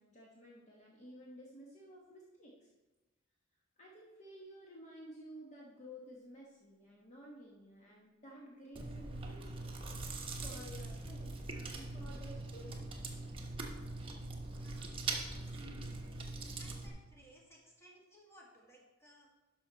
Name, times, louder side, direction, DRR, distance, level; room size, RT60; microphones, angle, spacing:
voice 1, 0.0-2.7 3.8-9.7 10.1-12.8, equal, 35° left, -3 dB, 1.3 m, -53 dB
Chewing mastication, 8.7-16.9, right 2 dB, 25° right, 1.1 m, -42 dB
voice 2, 14.5-14.9 16.6-19.4, equal, 15° left, -3 dB, 1.9 m, -61 dB
11.5 x 5.7 x 4.1 m, 1.2 s
head